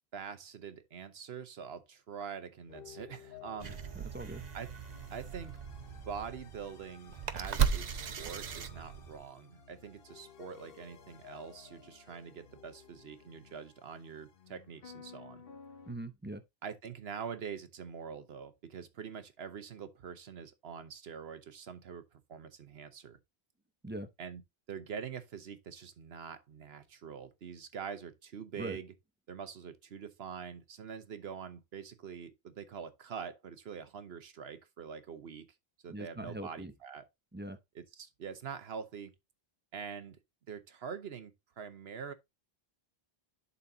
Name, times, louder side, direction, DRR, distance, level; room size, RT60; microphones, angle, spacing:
voice 1, 0.1-3.8 4.5-4.7 5.1-5.5 6.1-15.4 16.6-23.2 24.2-24.4 24.7-28.9 29.3-35.5 35.8-37.1 37.7-39.1 39.7-40.2 40.5-41.3 41.6-42.1, right 7 dB, 75° right, 1.2 m, -44 dB
sound 1, 2.7-15.9, left 8 dB, 60° left, 1.1 m, -55 dB
voice 2, 3.6-4.4 15.9-16.4 23.8-24.1 28.6-28.8 35.9-36.7 37.3-37.6, right 1 dB, 15° right, 0.5 m, -42 dB
sound 2, 3.6-9.3, right 7 dB, 45° right, 0.7 m, -36 dB
11.0 x 4.1 x 2.7 m
omnidirectional pair, 1.1 m